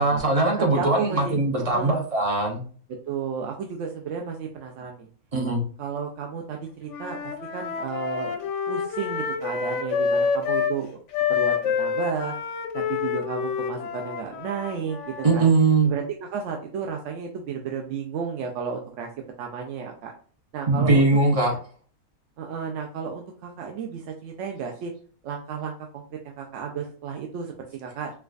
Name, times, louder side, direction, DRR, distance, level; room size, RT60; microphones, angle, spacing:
voice 1, 0.0-2.6 5.3-5.6 15.2-15.9 20.7-21.6, right 3 dB, 50° right, 1 dB, 0.4 m, -21 dB
voice 2, 0.7-1.4 1.7-2.1 3.1-5.1 5.8-11.0 11.3-12.3 12.7-15.5 15.8-16.0 16.3-19.1 19.4-20.1 20.5-21.1 22.4-24.9 25.2-28.1, right 6 dB, 65° right, 2 dB, 0.8 m, -33 dB
Wind instrument woodwind instrument, 6.9-10.8 11.1-15.5, left 6 dB, 65° left, 0.8 m, -28 dB
4.5 x 2.3 x 2.4 m, 0.43 s
omnidirectional pair, 1.6 m